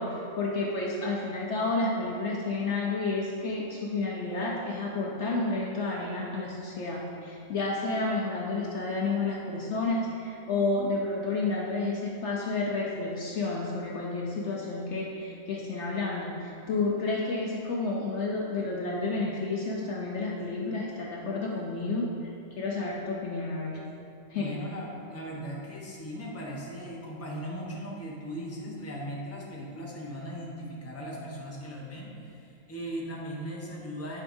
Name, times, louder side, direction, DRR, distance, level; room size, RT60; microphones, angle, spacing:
voice 1, 0.0-22.3 22.6-23.8 24.3-24.6, left 3 dB, 60° left, -3 dB, 0.9 m, -30 dB
voice 2, 24.3-34.2, equal, 10° left, -5 dB, 0.9 m, -38 dB
10.0 x 4.9 x 2.6 m, 2.5 s
omnidirectional pair, 1.5 m